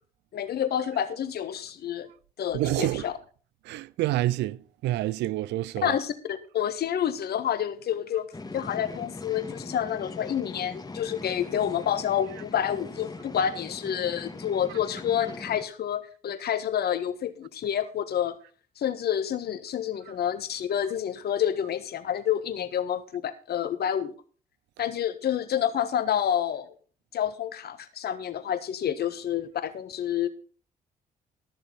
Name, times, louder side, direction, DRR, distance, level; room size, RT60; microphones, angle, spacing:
voice 1, 0.3-2.1 2.4-3.1 5.8-8.2 8.5-18.3 18.8-24.1 24.8-26.7 27.1-30.3, left 9 dB, 60° left, 1.4 m, -28 dB
voice 2, 2.5-3.1 3.7-6.0, right 16 dB, 70° right, 0.5 m, -28 dB
sound 1, 8.3-15.6, left 3 dB, 20° left, 1.8 m, -41 dB
13.5 x 6.9 x 5.5 m
hypercardioid pair, 50°, 18 cm